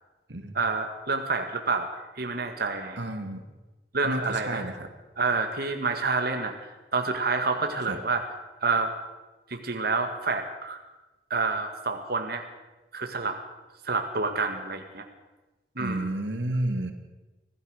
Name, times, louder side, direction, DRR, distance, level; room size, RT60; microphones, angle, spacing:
voice 1, 0.5-3.0 3.9-4.6 5.2-6.6 6.9-8.2 8.6-8.9 9.5-10.8 11.3-12.4 12.9-13.4 13.8-15.0 15.8-16.2, right 4 dB, 60° right, 5 dB, 2.1 m, -28 dB
voice 2, 3.0-3.4 4.0-4.9 7.8-8.0 15.8-16.9, right 1 dB, 80° right, 7 dB, 2.2 m, -31 dB
25.5 x 16.5 x 6.6 m, 1.1 s
head